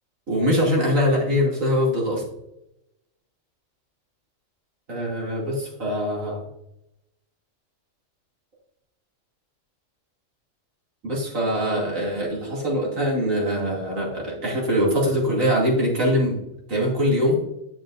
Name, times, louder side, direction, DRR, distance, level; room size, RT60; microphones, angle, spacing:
voice 1, 0.3-2.2 4.9-6.4 11.0-16.4 16.7-17.4, equal, 75° right, -3 dB, 3.0 m, -23 dB
10.5 x 7.5 x 2.6 m, 0.86 s
omnidirectional pair, 1.4 m